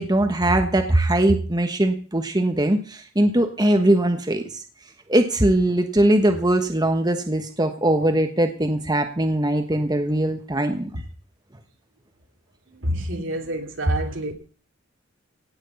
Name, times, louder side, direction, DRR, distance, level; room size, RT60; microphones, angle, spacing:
voice 1, 0.0-4.6 5.1-11.0, right 1 dB, 20° right, 1.2 m, -21 dB
voice 2, 12.7-14.3, right 1 dB, 75° right, 2.9 m, -28 dB
17.0 x 6.4 x 8.3 m
head